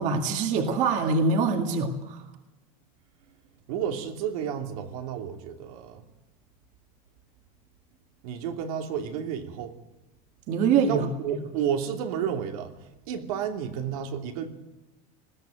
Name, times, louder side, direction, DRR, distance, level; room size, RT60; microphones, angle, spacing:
voice 1, 0.0-2.2 10.5-11.1, right 5 dB, 40° right, 5 dB, 2.1 m, -24 dB
voice 2, 3.7-6.0 8.2-9.7 10.9-12.7 13.1-14.5, right 8 dB, 75° right, 4 dB, 2.7 m, -31 dB
20.5 x 15.0 x 9.2 m, 1.0 s
cardioid pair, 170°, 19 cm